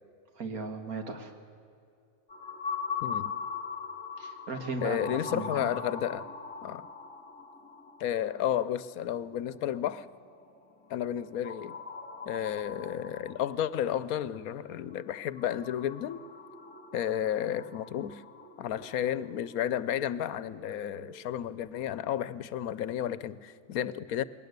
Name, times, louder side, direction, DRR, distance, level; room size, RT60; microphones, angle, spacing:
voice 1, 0.4-1.4 4.2-5.7, right 3 dB, 80° right, 5 dB, 2.3 m, -37 dB
sound 1, 2.3-21.3, left 5 dB, 20° left, 2.2 m, -42 dB
voice 2, 3.0-3.3 4.8-6.3 6.6-6.8 8.0-10.1 10.9-11.8 12.3-16.2 16.9-18.2 18.6-24.2, left 10 dB, 80° left, 17 dB, 1.1 m, -32 dB
21.0 x 18.5 x 8.1 m, 2.5 s
omnidirectional pair, 1.5 m